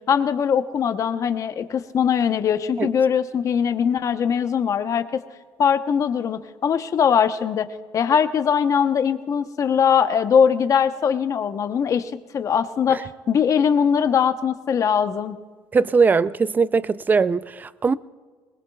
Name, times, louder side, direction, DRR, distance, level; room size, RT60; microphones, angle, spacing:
voice 1, 0.1-5.2 5.6-7.7 7.9-15.4, left 7 dB, 45° left, 0.9 m, -21 dB
voice 2, 15.7-17.9, right 5 dB, 25° right, 0.4 m, -20 dB
22.5 x 20.0 x 2.3 m
cardioid pair, 115°, 8 cm